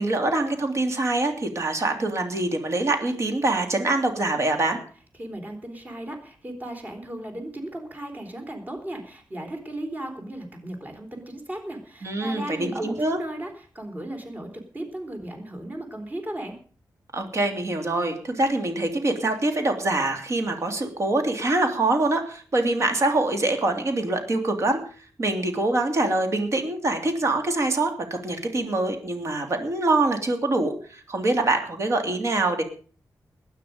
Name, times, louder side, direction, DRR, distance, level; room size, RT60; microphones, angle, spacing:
voice 1, 0.0-4.8 12.0-13.2 17.1-24.8 25.2-32.6, right 2 dB, 45° right, 5 dB, 2.9 m, -24 dB
voice 2, 5.2-16.6, right 1 dB, 25° right, 4 dB, 3.8 m, -36 dB
20.5 x 9.8 x 5.2 m, 0.42 s
wide cardioid pair, 175°, 7 cm